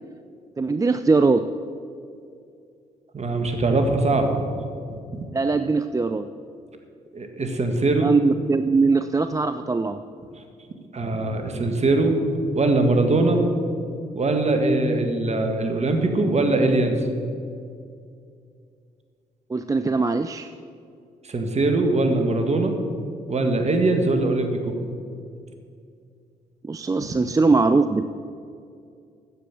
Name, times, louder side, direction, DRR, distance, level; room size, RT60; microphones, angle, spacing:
voice 1, 0.6-1.4 5.3-6.3 8.0-10.0 19.5-20.5 26.6-28.0, right 3 dB, 20° right, 10 dB, 0.5 m, -21 dB
voice 2, 3.1-4.5 5.1-5.2 7.1-8.1 10.9-12.2 12.6-13.4 14.1-17.0 21.3-22.7 23.3-24.8 27.0-27.1, right 2 dB, 40° right, 5 dB, 1.8 m, -21 dB
10.0 x 7.6 x 7.6 m, 2.4 s
supercardioid pair, 50°, 16 cm